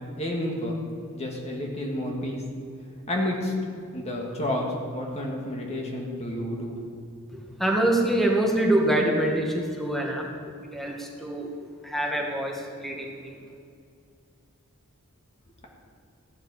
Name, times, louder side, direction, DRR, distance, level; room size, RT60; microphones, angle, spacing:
voice 1, 0.2-0.8 1.1-2.4 3.1-3.5 3.9-6.8, left 1 dB, 30° left, -1 dB, 1.7 m, -30 dB
voice 2, 7.6-10.3 10.7-11.5 11.8-13.3, right 1 dB, ahead, 0 dB, 1.6 m, -25 dB
15.0 x 10.5 x 4.8 m, 2.3 s
head